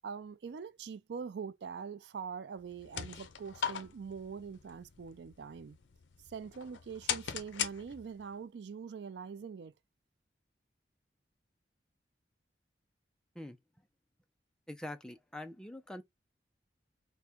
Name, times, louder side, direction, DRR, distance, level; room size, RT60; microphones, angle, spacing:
voice 1, 0.0-5.8 6.3-9.7, right 6 dB, 65° right, 0.4 m, -43 dB
sound 1, 2.6-8.3, left 8 dB, 90° left, 0.6 m, -40 dB
voice 2, 14.7-16.0, left 1 dB, 5° left, 0.4 m, -44 dB
3.5 x 2.2 x 4.3 m
head